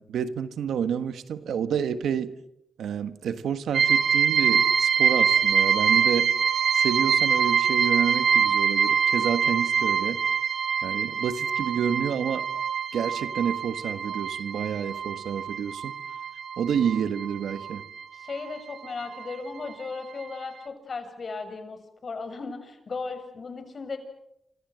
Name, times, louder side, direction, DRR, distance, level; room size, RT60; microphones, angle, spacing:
voice 1, 0.0-2.4 2.8-6.3 6.7-10.2 10.8-12.5 12.9-15.9 16.6-17.8, right 8 dB, 90° right, 12 dB, 1.5 m, -29 dB
sound 1, 3.7-18.0 18.3-19.4 19.7-19.8 20.2-20.3, right 7 dB, 70° right, 1.6 m, -25 dB
voice 2, 18.1-24.0, left 4 dB, 55° left, 8 dB, 6.8 m, -36 dB
28.5 x 26.0 x 7.9 m, 0.80 s
cardioid pair, 65°, 0 cm